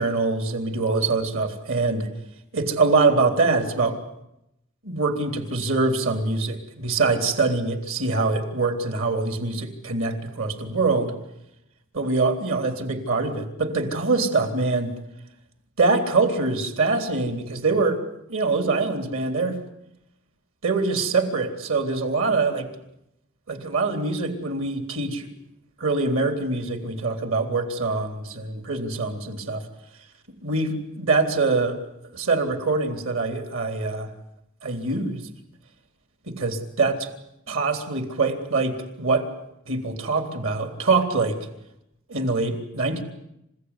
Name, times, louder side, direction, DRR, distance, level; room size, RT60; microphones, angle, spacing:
voice 1, 0.0-2.1 2.5-4.0 4.8-11.1 11.9-14.9 15.8-18.0 18.3-19.6 20.6-22.7 23.5-25.3 25.8-29.6 30.4-31.8 32.1-34.1 34.6-35.3 36.3-37.1 37.5-39.3 39.7-41.4 42.1-43.0, right 3 dB, 65° right, 6 dB, 3.7 m, -24 dB
28.5 x 16.5 x 9.9 m, 0.84 s
head